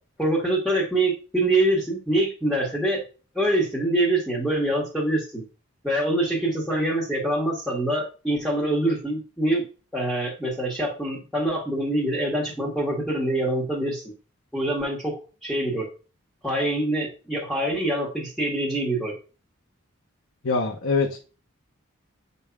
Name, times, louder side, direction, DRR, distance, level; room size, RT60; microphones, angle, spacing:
voice 1, 0.2-3.0 3.3-5.4 5.8-9.7 9.9-14.1 14.5-15.9 16.4-19.1, right 1 dB, ahead, -3 dB, 1.3 m, -25 dB
voice 2, 20.4-21.2, left 4 dB, 65° left, 2 dB, 0.8 m, -23 dB
7.8 x 5.4 x 2.3 m, 0.35 s
head